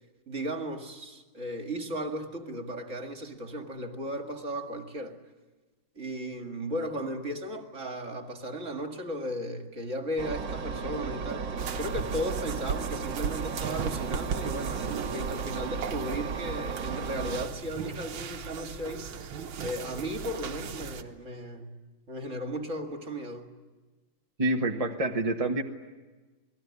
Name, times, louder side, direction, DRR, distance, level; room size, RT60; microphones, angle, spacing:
voice 1, 0.3-5.2 6.0-11.5 11.8-21.8 22.1-23.5, equal, 35° right, 4 dB, 2.3 m, -35 dB
Engine, 10.2-17.5, right 5 dB, 60° right, 2.1 m, -35 dB
sound 1, 11.6-21.0, right 6 dB, 75° right, 2.0 m, -37 dB
voice 2, 24.4-25.6, right 1 dB, 20° right, 2 dB, 1.1 m, -27 dB
29.0 x 20.0 x 9.7 m, 1.2 s
omnidirectional pair, 2.3 m